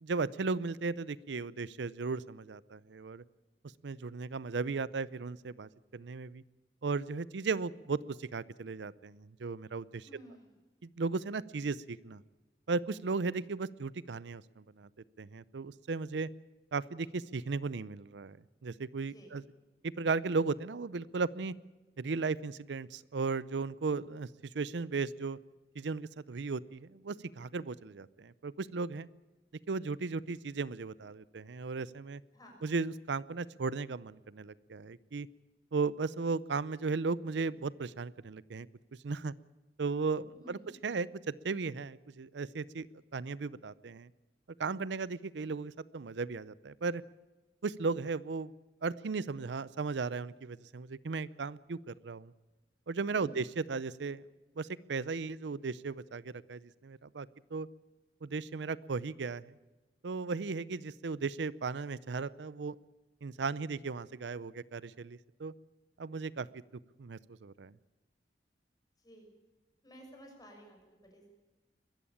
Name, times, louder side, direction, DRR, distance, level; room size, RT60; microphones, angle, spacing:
voice 1, 0.0-3.2 3.8-6.4 6.8-10.1 10.8-12.2 12.7-14.9 15.2-16.3 16.7-18.4 18.6-19.4 19.8-21.5 22.0-24.3 24.5-25.4 25.8-29.1 29.7-32.2 32.6-35.3 35.7-38.7 39.0-39.3 39.8-42.9 43.1-44.1 44.6-47.0 47.6-48.5 48.8-52.3 52.9-54.2 54.6-57.7 58.2-59.4 60.0-62.8 63.2-65.5 66.0-66.5 67.0-67.7, right 4 dB, 75° right, 20 dB, 0.5 m, -36 dB
voice 2, 10.0-10.6 19.1-19.3 32.3-32.6 40.3-40.7 53.1-53.4 69.0-69.3 69.8-71.3, equal, 20° left, 2 dB, 6.3 m, -54 dB
22.0 x 14.5 x 8.6 m, 1.2 s
head